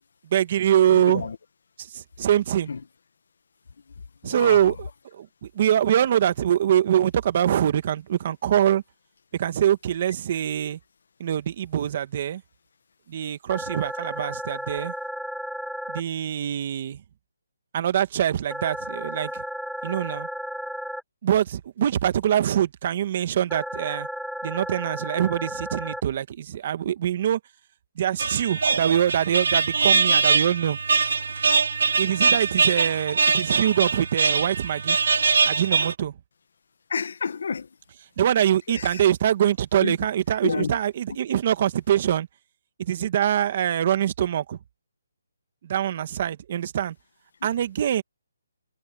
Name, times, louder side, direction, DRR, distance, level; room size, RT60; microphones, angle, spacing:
voice 1, 0.3-1.2 1.8-2.7 4.2-8.8 9.3-10.8 11.2-12.4 13.1-14.9 15.9-17.0 17.7-19.4 19.8-20.3 21.2-24.1 24.4-27.4 28.0-30.8 32.0-35.0 35.5-36.1 38.2-42.3 42.8-44.6 45.6-47.0 47.4-48.0, right 10 dB, 35° right, 1.8 m, -24 dB
voice 2, 0.9-1.4 2.7-2.8 4.2-4.6 36.9-37.7 38.7-39.0 39.8-40.0 40.4-40.8, left 5 dB, 65° left, 1.8 m, -29 dB
sound 1, 13.5-16.0 18.5-21.0 23.5-26.0, equal, ahead, 2.0 m, -33 dB
sound 2, 28.2-35.9, right 5 dB, 70° right, 1.4 m, -22 dB
hypercardioid pair, 165°, 0 cm